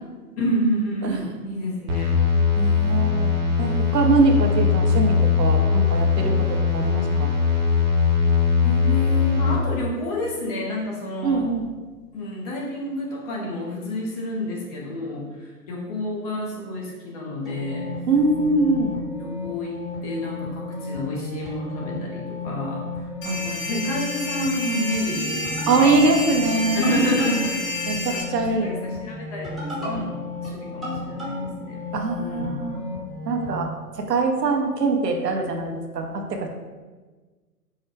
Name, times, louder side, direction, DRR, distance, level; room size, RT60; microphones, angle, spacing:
voice 1, 0.4-2.2 8.6-11.5 12.1-17.9 18.5-22.9 23.2-26.2 26.7-31.8 32.1-32.6, left 1 dB, 25° left, -2 dB, 0.6 m, -29 dB
sound 1, 1.9-9.6, left 5 dB, 30° right, 0.5 m, -20 dB
voice 2, 2.5-7.4 11.2-11.7 18.1-18.9 23.2-23.4 25.7-26.9 27.9-28.7 31.9-32.8 33.2-33.7 34.0-36.5, right 3 dB, 80° right, 3 dB, 0.8 m, -23 dB
sound 2, 17.5-33.6, left 3 dB, ahead, 0.9 m, -33 dB
sound 3, 23.2-28.2, left 1 dB, 55° left, 0.9 m, -30 dB
4.6 x 2.1 x 4.5 m, 1.3 s
hypercardioid pair, 125°, 48 cm